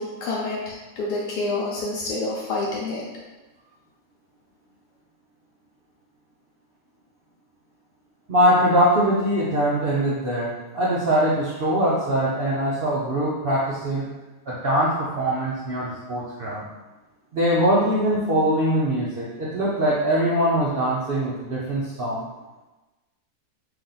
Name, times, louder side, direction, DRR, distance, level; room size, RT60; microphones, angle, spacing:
voice 1, 0.0-3.0, left 2 dB, 85° left, -4 dB, 1.2 m, -28 dB
voice 2, 8.3-14.1 14.5-16.6 17.3-22.3, equal, 60° right, -7 dB, 0.6 m, -22 dB
3.4 x 2.6 x 3.8 m, 1.1 s
omnidirectional pair, 1.7 m